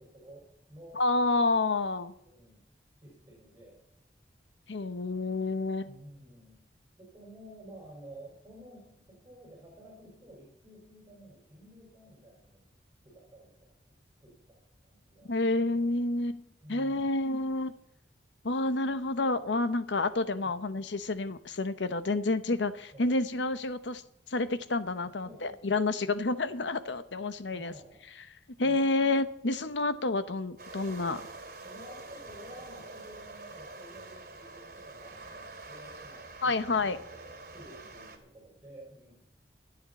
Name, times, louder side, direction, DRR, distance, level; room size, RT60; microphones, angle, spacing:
voice 1, 0.0-1.0 2.2-2.7 3.0-3.8 5.9-6.6 7.0-12.7 13.0-13.7 14.2-15.4 16.6-17.1 20.4-20.6 22.9-23.1 25.0-25.5 27.5-28.0 28.6-28.9 31.6-39.1, right 1 dB, 15° right, -3 dB, 5.3 m, -52 dB
voice 2, 0.9-2.1 4.7-6.0 15.3-17.7 18.4-24.0 24.3-27.7 28.6-31.2 36.4-37.0, left 2 dB, 75° left, 12 dB, 0.9 m, -29 dB
sound 1, 30.6-38.2, right 2 dB, 50° right, 2.4 m, -46 dB
25.0 x 8.8 x 4.2 m, 0.77 s
head